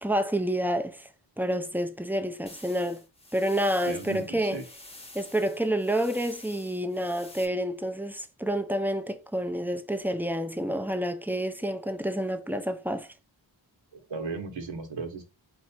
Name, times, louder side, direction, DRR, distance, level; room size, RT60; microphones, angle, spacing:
voice 1, 0.0-1.1 1.4-3.0 3.3-4.6 5.1-13.1, equal, 5° right, 0.5 m, -29 dB
sound 1, 2.5-7.5, left 1 dB, 15° left, 1.0 m, -49 dB
voice 2, 3.8-4.6 13.9-15.2, right 4 dB, 75° right, 1.2 m, -36 dB
4.6 x 2.7 x 4.3 m
wide cardioid pair, 70°, 46 cm